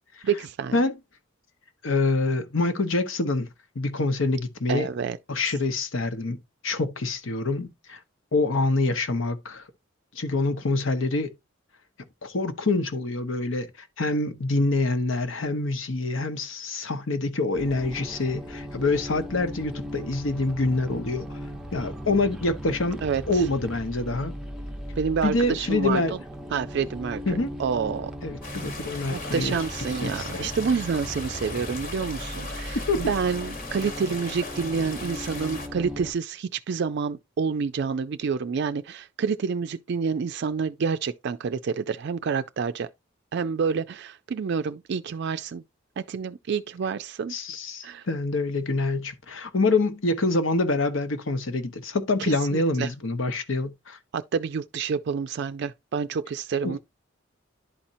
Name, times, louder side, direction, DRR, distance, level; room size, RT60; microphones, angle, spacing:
voice 1, 0.2-0.8 4.7-5.2 5.5-5.6 23.0-23.4 25.0-26.0 26.5-28.1 29.1-42.9 43.3-45.6 46.0-47.3 47.8-48.0 52.2-52.9 54.1-56.8, right 6 dB, 55° right, 0.4 m, -28 dB
voice 2, 1.8-3.5 3.7-4.9 5.3-6.4 6.6-8.0 8.3-9.6 10.1-11.3 12.2-21.3 21.7-23.0 23.3-24.3 25.2-26.1 27.3-27.5 28.2-29.6 30.0-30.5 32.7-33.1 47.3-54.0 56.6-56.8, left 2 dB, 75° left, 1.0 m, -26 dB
sound 1, 17.5-36.1, equal, 5° right, 0.6 m, -38 dB
sound 2, 28.4-35.7, left 3 dB, 45° left, 1.3 m, -38 dB
11.5 x 4.3 x 2.5 m
head